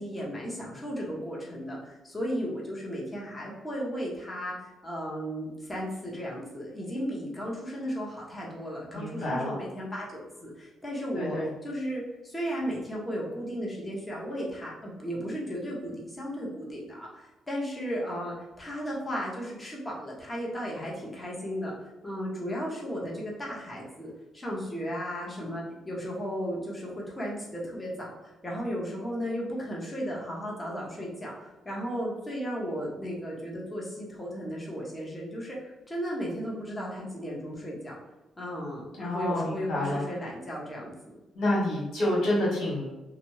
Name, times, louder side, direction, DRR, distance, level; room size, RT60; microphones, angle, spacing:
voice 1, 0.0-11.4 11.6-37.9 38.4-41.1, equal, 20° left, -3 dB, 1.0 m, -35 dB
voice 2, 8.9-9.5 11.1-11.5 39.0-40.0 41.3-42.8, left 1 dB, 75° left, -6 dB, 1.5 m, -28 dB
2.5 x 2.2 x 3.1 m, 1.1 s
cardioid pair, 75°, 0 cm